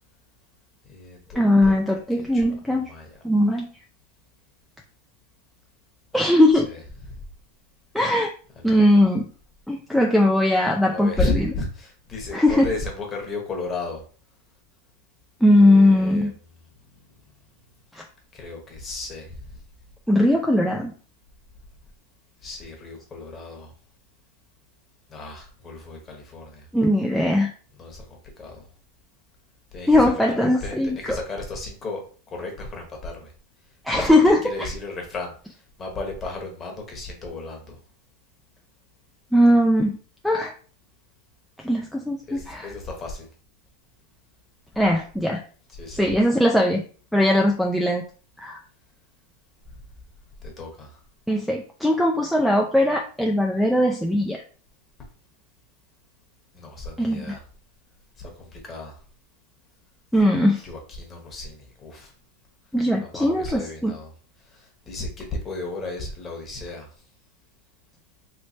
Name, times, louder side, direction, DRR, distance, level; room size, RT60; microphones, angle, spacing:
voice 1, 0.8-3.2 6.5-7.2 8.5-9.0 10.9-14.0 15.6-16.4 18.3-19.4 22.4-23.7 25.1-26.7 27.7-28.6 29.7-32.0 32.3-33.3 33.9-37.8 42.3-43.3 45.7-46.2 50.4-51.0 56.5-57.4 58.2-58.9 60.6-62.1 63.0-64.1 64.5-66.9, left 3 dB, 20° left, 1 dB, 1.0 m, -34 dB
voice 2, 1.4-2.9 3.2-3.7 6.1-6.7 7.9-8.3 8.6-9.3 9.7-11.3 12.3-12.7 15.4-16.3 17.9-18.0 20.1-20.9 26.7-27.5 29.9-31.0 33.9-34.7 39.3-40.0 40.2-40.5 41.6-42.7 44.8-45.4 45.9-46.8 47.1-48.0 48.4-48.6 51.3-54.4 57.0-57.4 60.1-60.6 62.7-63.9, left 1 dB, ahead, 0 dB, 0.3 m, -19 dB
3.2 x 3.1 x 2.7 m, 0.41 s
supercardioid pair, 155°, 0 cm